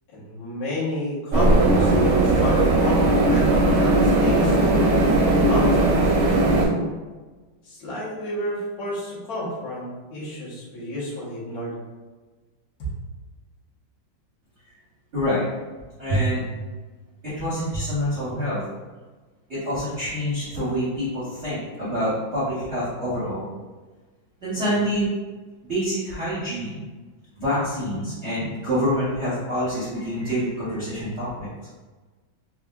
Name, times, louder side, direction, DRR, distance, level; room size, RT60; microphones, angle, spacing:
voice 1, 0.1-4.6 5.5-6.7 7.6-11.8 12.8-12.9 24.5-24.8, left 1 dB, 55° left, -9 dB, 1.3 m, -31 dB
sound 1, 1.3-6.7, right 2 dB, 70° right, 1.1 m, -18 dB
voice 2, 15.1-15.4 16.0-16.4 17.4-18.6 19.5-23.5 24.4-25.1 25.7-26.8 27.4-31.5, equal, 50° right, -10 dB, 0.8 m, -26 dB
3.6 x 2.3 x 2.2 m, 1.3 s
omnidirectional pair, 2.2 m